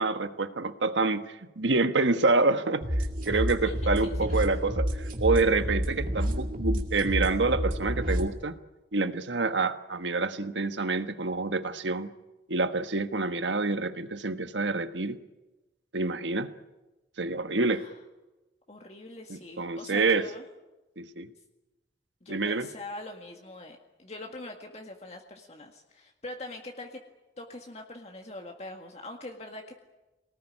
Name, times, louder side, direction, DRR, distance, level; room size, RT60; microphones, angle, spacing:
voice 1, 0.0-8.5 8.9-12.1 12.5-15.2 15.9-16.5 17.2-17.8 19.3-20.3 21.0-21.3 22.3-22.7, right 3 dB, 90° right, 9 dB, 1.4 m, -27 dB
sound 1, 2.8-8.3, equal, 50° right, 2.4 m, -29 dB
voice 2, 3.6-4.2 17.7-18.0 18.7-20.4 22.2-27.0 27.4-29.7, left 2 dB, 35° left, 2 dB, 1.9 m, -43 dB
24.5 x 19.0 x 10.0 m, 1.1 s
head